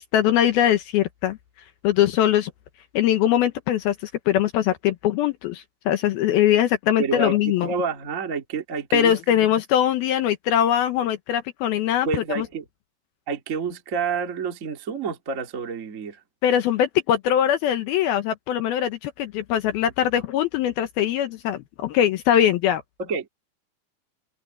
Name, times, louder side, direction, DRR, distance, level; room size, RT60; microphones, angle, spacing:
voice 1, 0.0-1.4 1.8-2.5 2.9-7.7 8.9-12.1 12.4-12.5 16.4-22.8, left 11 dB, 75° left, 2.5 m, -22 dB
voice 2, 7.0-9.5 12.0-12.6 13.3-16.2 23.0-23.3, right 5 dB, 35° right, 1.3 m, -29 dB
omnidirectional pair, 5.2 m